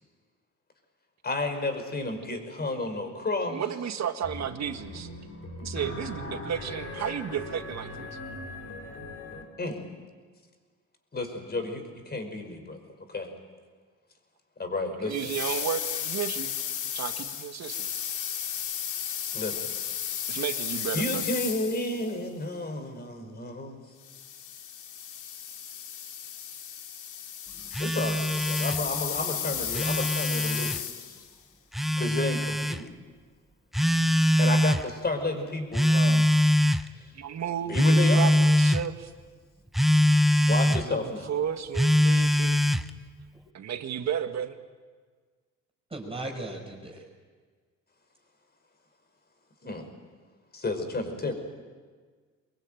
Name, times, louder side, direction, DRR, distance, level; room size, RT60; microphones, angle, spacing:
voice 1, 1.2-3.6 9.6-9.8 11.1-12.8 13.1-13.3 14.6-15.2 19.3-19.7 20.9-23.8 27.8-30.7 32.0-33.0 34.4-36.3 36.9-37.1 37.7-38.3 40.5-41.3 49.6-49.8 50.5-51.3, left 2 dB, 35° left, 6 dB, 5.2 m, -32 dB
voice 2, 3.5-5.1 5.6-8.2 15.0-16.6 16.9-17.9 20.3-21.3 37.1-39.1 40.7-42.6 43.5-44.6, right 8 dB, 60° right, 7 dB, 1.8 m, -33 dB
sound 1, 4.2-9.4, left 2 dB, 50° left, 4.6 m, -39 dB
sound 2, 15.1-22.1 24.0-31.3, left 9 dB, 80° left, 2.5 m, -34 dB
Telephone, 27.7-28.8 29.6-30.8 31.7-32.8 33.7-34.8 35.7-36.9 37.7-38.8 39.7-40.8 41.7-42.9, left 1 dB, ahead, 0.9 m, -22 dB
voice 3, 45.9-47.0, right 2 dB, 20° right, 0 dB, 5.6 m, -36 dB
24.0 x 22.5 x 9.2 m, 1.5 s
cardioid pair, 90°, 30 cm